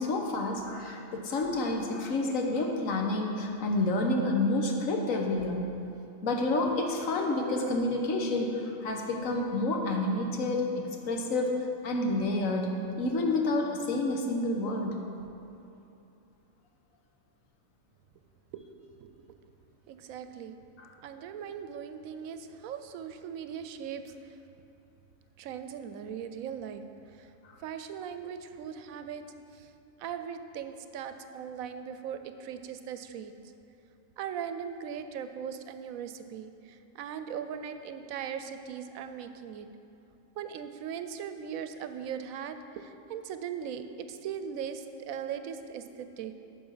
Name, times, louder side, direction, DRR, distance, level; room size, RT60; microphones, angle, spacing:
voice 1, 0.0-5.6 6.2-15.0 20.8-20.9, left 2 dB, 75° left, 2 dB, 1.4 m, -29 dB
voice 2, 18.9-19.3 19.9-20.6 21.0-24.4 25.4-26.8 27.1-27.3 27.6-29.2 29.5-29.7 30.0-33.3 34.2-39.7 40.4-46.4, right 8 dB, 85° right, 9 dB, 1.0 m, -39 dB
9.5 x 6.1 x 5.6 m, 2.8 s
omnidirectional pair, 1.4 m